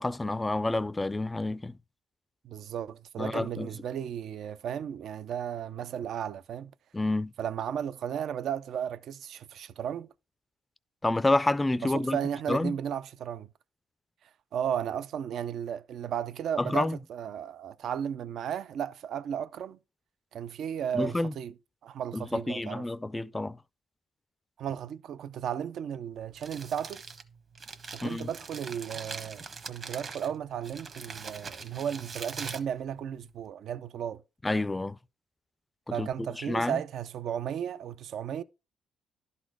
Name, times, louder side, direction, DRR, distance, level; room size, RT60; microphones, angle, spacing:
voice 1, 0.0-1.7 3.2-3.7 6.9-7.3 11.0-12.2 12.5-12.7 16.6-17.0 20.9-21.3 22.1-23.6 28.0-28.3 34.4-35.0 36.0-36.8, left 2 dB, 15° left, 0.4 m, -29 dB
voice 2, 2.4-6.7 7.4-10.1 11.8-13.5 14.5-19.8 20.3-21.5 21.8-22.8 24.6-27.0 27.9-34.2 35.9-38.4, right 9 dB, 70° right, 0.4 m, -34 dB
Crumpling crinkling, 26.2-33.5, right 4 dB, 45° right, 1.1 m, -43 dB
11.5 x 4.2 x 4.7 m
cardioid pair, 90°, 0 cm